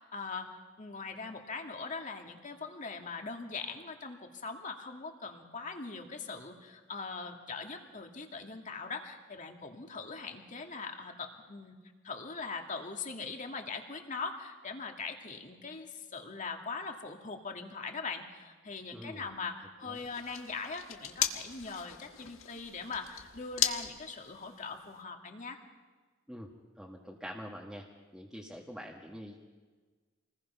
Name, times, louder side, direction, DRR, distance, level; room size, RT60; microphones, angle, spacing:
voice 1, 0.0-11.8 12.0-25.6, left 4 dB, 40° left, 3 dB, 2.3 m, -41 dB
voice 2, 18.9-19.3 19.8-20.0 26.3-26.5 26.8-27.9 28.1-29.4, equal, ahead, -2 dB, 1.7 m, -45 dB
sound 1, 19.9-25.0, left 10 dB, 80° left, 1.5 m, -37 dB
27.5 x 20.5 x 5.7 m, 1.4 s
head